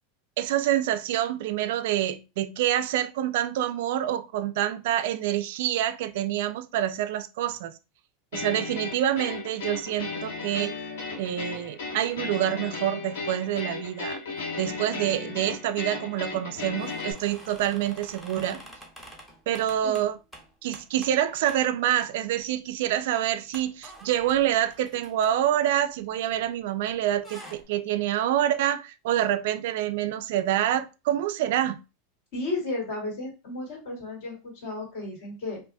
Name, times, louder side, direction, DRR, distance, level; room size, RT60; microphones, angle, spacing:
voice 1, 0.4-7.7 8.3-10.7 11.2-14.2 14.6-18.6 19.5-20.2 20.6-31.8, right 12 dB, 60° right, 0.3 m, -27 dB
sound 1, 8.3-17.1, left 4 dB, 80° left, 1.3 m, -35 dB
sound 2, 16.7-21.2 21.5-21.6 22.0-22.5 22.8-22.9 23.5-26.6 26.9-27.6, right 1 dB, 5° left, 0.6 m, -48 dB
voice 2, 32.3-35.6, left 2 dB, 50° left, 2.1 m, -33 dB
5.2 x 2.4 x 2.2 m
supercardioid pair, 170°, 0 cm